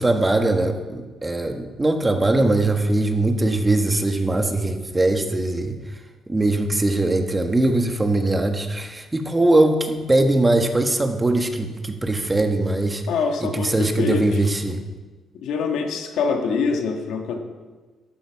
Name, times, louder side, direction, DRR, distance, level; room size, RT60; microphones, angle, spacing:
voice 1, 0.0-5.7 6.3-13.0 13.4-14.8, right 2 dB, 20° right, 5 dB, 1.5 m, -21 dB
voice 2, 13.1-14.4 15.4-17.4, left 5 dB, 85° left, 3 dB, 1.8 m, -24 dB
13.5 x 11.5 x 4.8 m, 1.3 s
cardioid pair, 90°, 0 cm